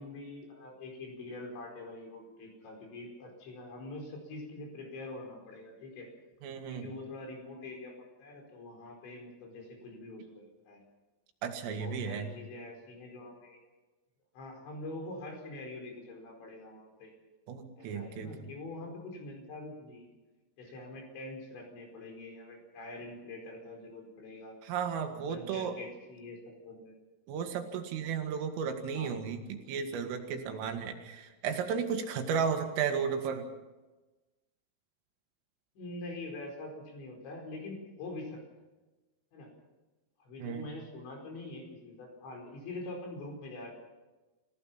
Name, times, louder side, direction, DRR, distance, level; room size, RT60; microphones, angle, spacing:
voice 1, 0.0-6.1 6.7-10.8 11.7-13.6 14.3-17.1 17.8-20.1 20.6-24.6 25.1-27.0 28.9-29.2 35.8-38.4 39.3-39.5 40.2-43.7, left 2 dB, 65° left, 1 dB, 6.9 m, -44 dB
voice 2, 6.4-6.9 11.4-12.3 17.5-18.3 24.6-25.7 27.3-33.5 40.4-40.6, right 6 dB, 90° right, 5 dB, 4.5 m, -34 dB
28.5 x 16.0 x 5.8 m, 1.1 s
omnidirectional pair, 5.7 m